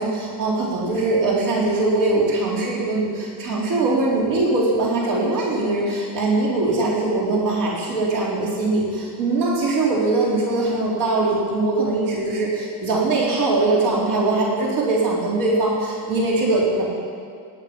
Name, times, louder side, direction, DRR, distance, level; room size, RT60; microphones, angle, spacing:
voice 1, 0.0-16.8, right 2 dB, 50° right, -5 dB, 4.0 m, -21 dB
18.5 x 9.9 x 5.4 m, 2.2 s
cardioid pair, 170°, 50 cm